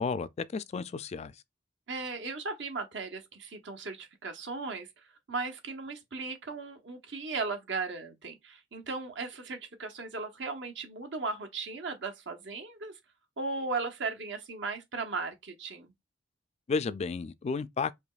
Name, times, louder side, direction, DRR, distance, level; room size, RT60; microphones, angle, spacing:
voice 1, 0.0-1.3 16.7-17.9, left 4 dB, 35° left, 0.3 m, -32 dB
voice 2, 1.9-4.9 5.3-12.9 13.4-15.9, right 4 dB, 70° right, 0.9 m, -37 dB
5.0 x 2.9 x 2.4 m
head